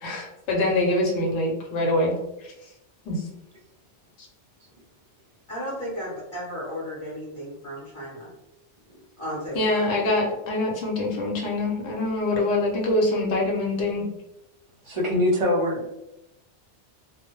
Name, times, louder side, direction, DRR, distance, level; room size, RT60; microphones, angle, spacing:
voice 1, 0.0-2.1 3.0-3.2 9.6-14.0, left 2 dB, 80° left, -1 dB, 1.0 m, -24 dB
voice 2, 5.5-8.3 9.2-9.9, equal, 30° left, -7 dB, 0.7 m, -34 dB
voice 3, 14.8-15.9, left 1 dB, 50° right, -2 dB, 0.3 m, -23 dB
2.2 x 2.1 x 2.9 m, 0.89 s
omnidirectional pair, 1.2 m